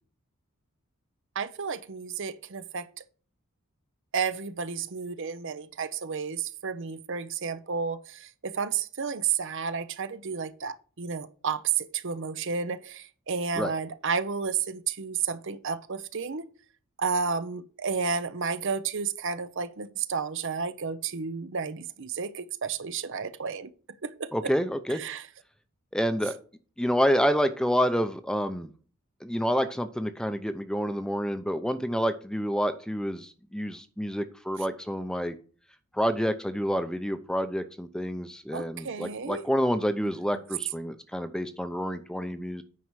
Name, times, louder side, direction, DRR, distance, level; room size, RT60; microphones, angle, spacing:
voice 1, 1.4-2.9 4.1-16.5 17.0-23.7 24.0-24.5 24.9-25.3 38.5-39.4 40.0-40.1, right 5 dB, 55° right, 0.7 m, -32 dB
voice 2, 24.3-25.0 25.9-26.3 26.8-28.7 29.2-35.3 35.9-42.6, equal, 5° left, 0.6 m, -28 dB
9.4 x 5.4 x 4.7 m
head